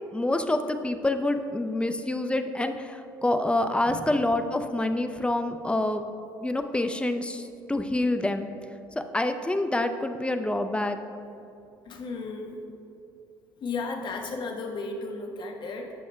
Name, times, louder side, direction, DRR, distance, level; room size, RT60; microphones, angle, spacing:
voice 1, 0.1-6.0 6.4-8.5 9.0-11.0, left 1 dB, 10° left, 7 dB, 0.6 m, -27 dB
voice 2, 11.8-12.6 13.6-15.9, left 3 dB, 45° left, 2 dB, 1.2 m, -34 dB
17.0 x 6.4 x 2.2 m, 2.7 s
hypercardioid pair, 55°, 11 cm